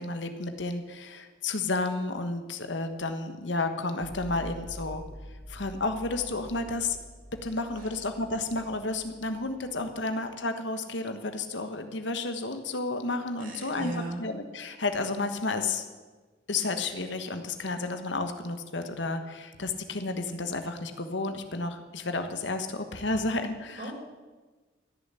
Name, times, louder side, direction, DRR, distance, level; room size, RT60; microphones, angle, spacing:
voice 1, 0.0-5.0 5.5-7.0 7.4-13.9 14.2-15.8 16.5-23.9, left 3 dB, 65° left, 7 dB, 1.4 m, -31 dB
sound 1, 4.0-10.0, equal, 50° left, 3.0 m, -46 dB
voice 2, 13.4-14.3 23.7-23.9, right 2 dB, 50° right, -1 dB, 4.5 m, -37 dB
15.5 x 7.2 x 9.8 m, 1.3 s
head